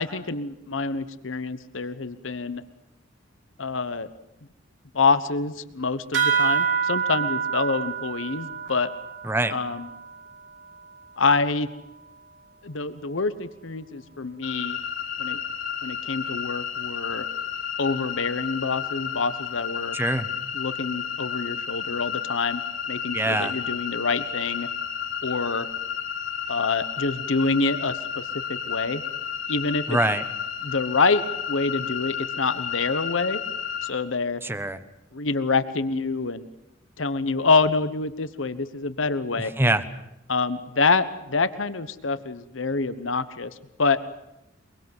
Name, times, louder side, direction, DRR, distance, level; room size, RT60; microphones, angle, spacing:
voice 1, 0.0-2.6 3.6-4.1 4.9-8.9 9.5-9.9 11.2-11.7 12.6-14.8 15.2-15.4 15.8-17.3 17.8-20.0 20.5-22.6 22.9-24.7 25.2-25.7 26.5-29.0 29.5-30.0 30.6-33.4 33.9-34.4 35.1-36.5 37.0-39.5 40.3-43.5 43.8-44.0, left 4 dB, 90° left, 13 dB, 1.1 m, -26 dB
sound 1, 6.1-11.1, right 7 dB, 75° right, 3.6 m, -27 dB
sound 2, 14.4-33.9, left 8 dB, 70° left, 4.5 m, -32 dB
voice 2, 19.9-20.3 23.1-23.6 29.9-30.2 34.4-34.8 39.4-39.9, right 1 dB, 10° right, 12 dB, 1.0 m, -24 dB
23.0 x 23.0 x 8.0 m, 0.88 s
head